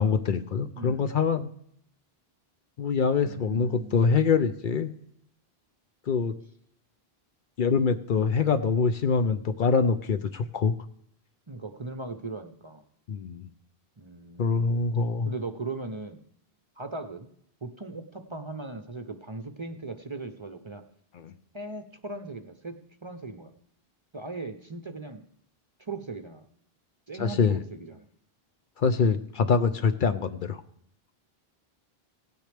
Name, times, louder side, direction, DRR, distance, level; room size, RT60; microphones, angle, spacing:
voice 1, 0.0-1.5 2.8-4.9 6.1-6.3 7.6-10.7 13.1-13.5 14.4-15.3 21.2-21.3 27.2-27.6 28.8-30.6, left 5 dB, 60° left, 10 dB, 0.7 m, -24 dB
voice 2, 0.8-1.2 3.2-4.1 11.5-12.8 14.0-14.9 15.2-16.2 16.8-17.3 17.6-20.8 21.5-23.5 24.1-25.2 25.8-26.4 27.1-28.1, right 3 dB, 35° right, 8 dB, 0.6 m, -38 dB
17.0 x 9.5 x 3.4 m, 0.69 s
omnidirectional pair, 1.0 m